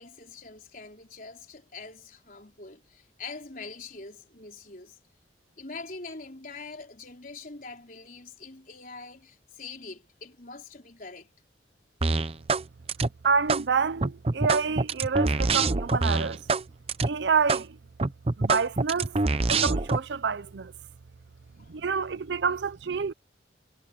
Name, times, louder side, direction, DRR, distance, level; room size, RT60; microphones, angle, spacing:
voice 1, 0.0-5.0 5.6-11.3 21.6-21.7, left 4 dB, 50° left, 4.4 m, -44 dB
sound 1, 12.0-12.6 12.9-13.6 14.0-16.6 16.9-17.1 17.5-17.6 18.0-20.0, right 3 dB, 35° right, 0.7 m, -25 dB
voice 2, 13.2-16.4 17.1-17.8 18.4-19.2 19.5-20.7 21.7-23.1, right 5 dB, 80° right, 0.6 m, -27 dB
head